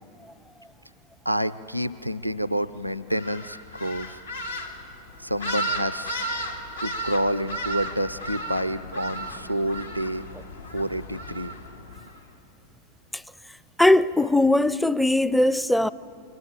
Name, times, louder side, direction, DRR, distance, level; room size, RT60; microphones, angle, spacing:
voice 1, 1.2-4.2 5.2-6.2 6.8-10.3 10.7-11.5, right 1 dB, 90° right, 0.5 m, -28 dB
sound 1, 3.1-12.2, right 1 dB, 80° left, 2.3 m, -34 dB
voice 2, 13.8-15.9, left 1 dB, 5° left, 0.5 m, -19 dB
28.5 x 23.5 x 9.0 m
figure-of-eight pair, 90°, 0 cm